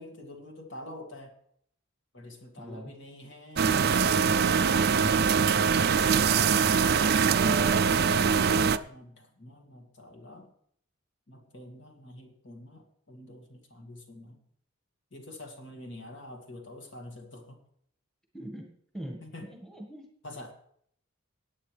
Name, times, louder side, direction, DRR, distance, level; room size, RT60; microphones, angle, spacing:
voice 1, 0.0-1.4 2.1-5.1 8.2-10.5 11.3-14.4 15.1-17.6 19.2-19.5 20.2-20.5, left 1 dB, 55° left, 2 dB, 2.1 m, -47 dB
voice 2, 2.6-2.9 18.3-20.0, right 1 dB, ahead, 0 dB, 1.6 m, -42 dB
sound 1, 3.6-8.8, right 6 dB, 45° right, 0.4 m, -23 dB
18.5 x 9.0 x 3.3 m, 0.67 s
head